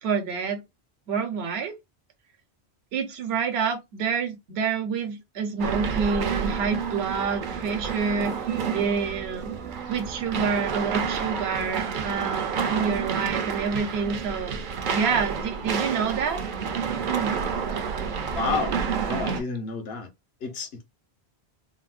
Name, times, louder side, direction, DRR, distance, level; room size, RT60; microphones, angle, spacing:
voice 1, 0.0-0.6 1.1-1.8 2.9-8.4 8.7-9.5 9.9-14.6 14.9-16.4 16.9-17.4, right 5 dB, 75° right, 1.0 m, -28 dB
sound 1, 5.6-19.4, right 6 dB, 60° right, 0.6 m, -29 dB
voice 2, 18.3-20.1 20.4-20.8, left 5 dB, 70° left, 1.1 m, -30 dB
3.8 x 2.1 x 2.4 m
omnidirectional pair, 1.1 m